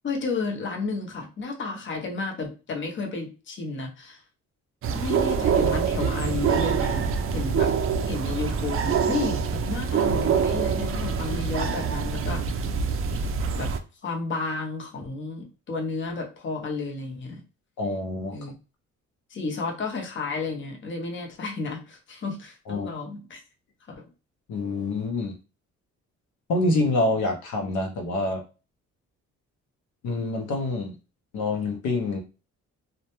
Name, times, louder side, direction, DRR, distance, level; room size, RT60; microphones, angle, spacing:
voice 1, 0.0-4.2 4.9-7.7 8.0-12.7 13.6-13.7 14.0-17.4 18.3-18.5 19.3-23.4 23.9-24.0, left 3 dB, 40° left, 2 dB, 0.7 m, -32 dB
sound 1, 4.8-13.8, right 6 dB, 45° right, 0.4 m, -25 dB
voice 2, 17.8-18.4 22.7-22.9 24.5-25.4 26.5-28.4 30.0-31.0 31.3-32.2, left 2 dB, 75° left, 3 dB, 0.6 m, -26 dB
2.1 x 2.0 x 2.9 m, 0.33 s
cardioid pair, 90°, 30 cm